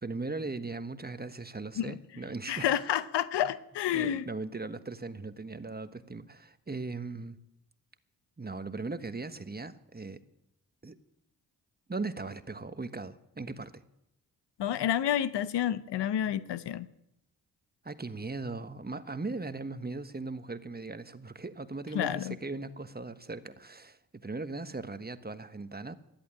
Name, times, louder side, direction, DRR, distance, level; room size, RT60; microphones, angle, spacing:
voice 1, 0.0-2.8 3.9-7.4 8.4-10.2 10.8-11.0 11.9-13.8 17.8-25.9, right 3 dB, 20° right, 11 dB, 1.3 m, -38 dB
voice 2, 2.5-4.2 14.6-16.9 21.9-22.4, left 10 dB, 75° left, 15 dB, 0.9 m, -29 dB
13.0 x 11.0 x 9.7 m, 0.83 s
supercardioid pair, 45°, 42 cm